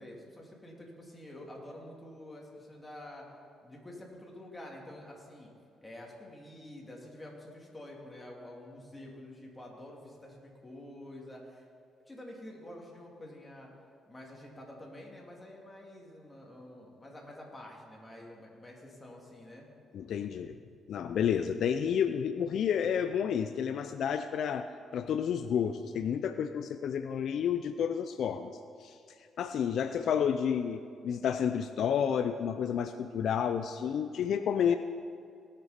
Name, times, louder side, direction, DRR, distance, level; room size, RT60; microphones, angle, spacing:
voice 1, 0.0-3.3 3.6-5.5 5.8-11.7 12.1-13.7 14.1-19.7, left 1 dB, 15° left, -2 dB, 2.8 m, -48 dB
voice 2, 19.9-20.6 20.9-29.0 29.4-34.8, left 8 dB, 70° left, 9 dB, 0.4 m, -30 dB
19.0 x 6.7 x 5.2 m, 2.3 s
cardioid pair, 90°, 0 cm